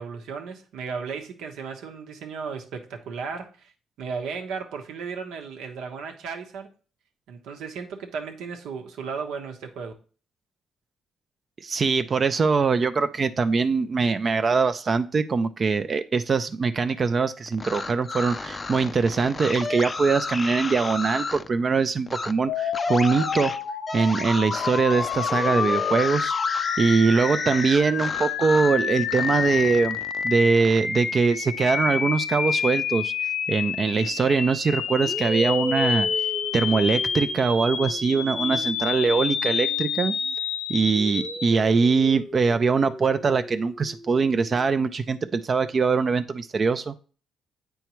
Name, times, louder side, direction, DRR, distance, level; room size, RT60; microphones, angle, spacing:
voice 1, 0.0-3.7 4.0-6.7 7.3-9.9, right 5 dB, 85° right, 1.0 m, -35 dB
voice 2, 11.6-23.5 23.9-26.3 26.8-30.0 30.2-33.1 33.5-36.1 36.5-40.1 40.7-46.9, right 4 dB, 40° right, 0.4 m, -22 dB
sound 1, 17.5-21.5 22.1-22.3 22.7-28.8 29.1-30.8, left 3 dB, 30° left, 0.4 m, -33 dB
sound 2, 22.5-41.5, left 6 dB, 80° left, 0.8 m, -28 dB
sound 3, 33.9-34.2 35.0-40.3 40.7-44.7, equal, 10° right, 0.8 m, -37 dB
8.1 x 4.5 x 3.0 m
cardioid pair, 90°, 0 cm